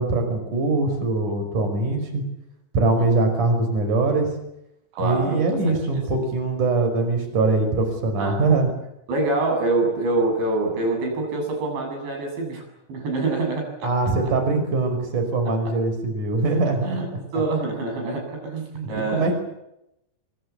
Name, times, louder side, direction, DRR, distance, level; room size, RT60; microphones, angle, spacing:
voice 1, 0.0-2.2 2.7-4.3 5.0-8.7 13.8-17.0 18.7-19.4, right 3 dB, 45° right, 6 dB, 6.9 m, -22 dB
voice 2, 4.9-6.0 8.2-8.5 9.1-12.6 12.9-13.9 14.2-14.3 15.5-15.7 16.8-19.3, right 2 dB, 70° right, 2 dB, 10.0 m, -26 dB
25.0 x 25.0 x 8.5 m, 0.84 s
omnidirectional pair, 5.3 m